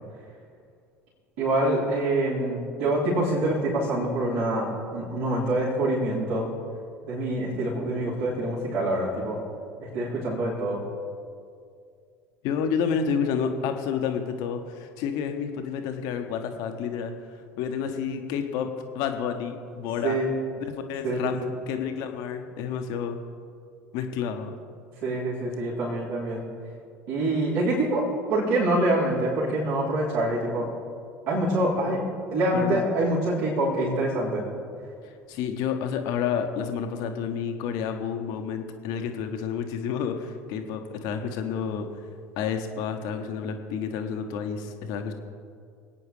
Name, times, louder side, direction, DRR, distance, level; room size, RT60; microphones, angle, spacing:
voice 1, 1.4-6.5 7.0-9.4 9.8-10.8 20.0-20.3 21.0-21.3 25.0-26.4 27.1-30.7 31.3-32.0 32.3-34.4, right 1 dB, 60° right, -9 dB, 3.8 m, -25 dB
voice 2, 12.4-17.1 17.6-18.7 18.9-20.2 20.6-21.4 21.7-23.2 23.9-24.6 32.5-32.8 35.3-41.9 42.4-45.1, left 7 dB, 55° left, 6 dB, 1.3 m, -30 dB
26.0 x 9.2 x 3.4 m, 2.3 s
figure-of-eight pair, 65°, 8 cm